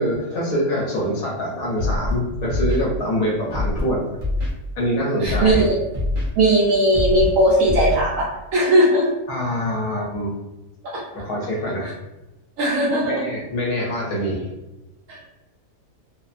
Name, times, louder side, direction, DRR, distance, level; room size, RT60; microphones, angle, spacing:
voice 1, 0.0-4.1 4.8-5.7 9.3-10.3 11.1-12.0 13.0-14.5, equal, 65° left, -3 dB, 1.1 m, -24 dB
Scratching (performance technique), 1.8-2.1 2.5-2.8 3.5-3.8 4.2-4.5 5.2-5.6 5.9-6.3 6.9-7.3 7.6-7.9, left 2 dB, 40° right, 0.4 m, -23 dB
voice 2, 5.2-5.7 6.4-8.3 8.5-9.1 10.9-11.0 12.6-13.3 15.1-15.3, right 1 dB, 70° right, -4 dB, 0.8 m, -18 dB
2.9 x 2.1 x 2.4 m, 1.0 s
omnidirectional pair, 1.7 m